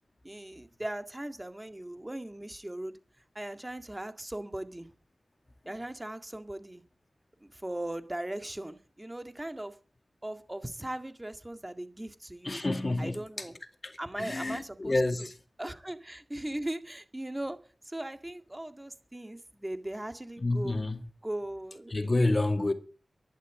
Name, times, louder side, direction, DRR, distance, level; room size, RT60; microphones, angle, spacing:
voice 1, 0.2-3.0 3.4-4.9 5.7-6.8 7.4-9.8 10.2-12.6 13.0-13.6 14.0-14.9 15.6-17.6 17.8-20.8 21.2-22.1 22.6-22.7, right 1 dB, 15° right, 2.0 m, -38 dB
voice 2, 12.4-13.5 13.8-15.3 20.4-21.0 21.9-22.7, left 2 dB, 35° left, 2.2 m, -29 dB
11.5 x 11.5 x 9.4 m
wide cardioid pair, 80°, 0 cm